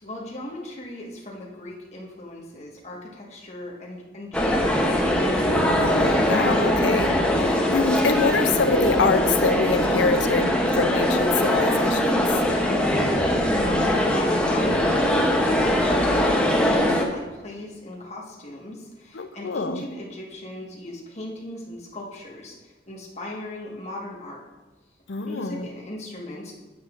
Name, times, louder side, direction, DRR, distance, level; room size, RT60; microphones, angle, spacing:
voice 1, 0.0-5.2 13.6-24.4 25.2-26.5, left 1 dB, 35° left, -2 dB, 1.4 m, -38 dB
sound 1, 4.3-17.0, equal, 5° left, 0.7 m, -21 dB
voice 2, 5.8-12.4 19.1-19.8 25.1-25.7, left 4 dB, 80° left, 9 dB, 0.6 m, -25 dB
9.2 x 8.1 x 2.5 m, 1.2 s
head